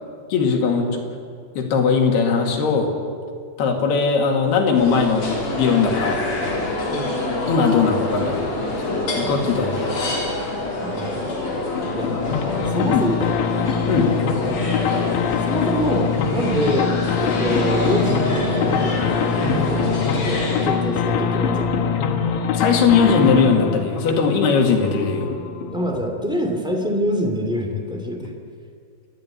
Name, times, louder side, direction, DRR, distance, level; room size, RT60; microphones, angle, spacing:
voice 1, 0.3-1.0 1.6-2.9 3.6-6.3 7.5-10.2 12.9-13.0 13.9-14.1 22.5-25.3, left 5 dB, 70° left, 2 dB, 4.2 m, -19 dB
sound 1, 4.8-20.7, left 2 dB, 50° left, 5.3 m, -26 dB
voice 2, 6.9-7.5 10.8-11.3 11.9-12.1 12.7-13.4 14.5-14.7 15.5-21.8 25.7-28.3, equal, ahead, 3 dB, 1.4 m, -25 dB
sound 2, 11.8-25.9, left 6 dB, 90° left, 3.9 m, -24 dB
28.0 x 11.5 x 10.0 m, 2.2 s
omnidirectional pair, 4.9 m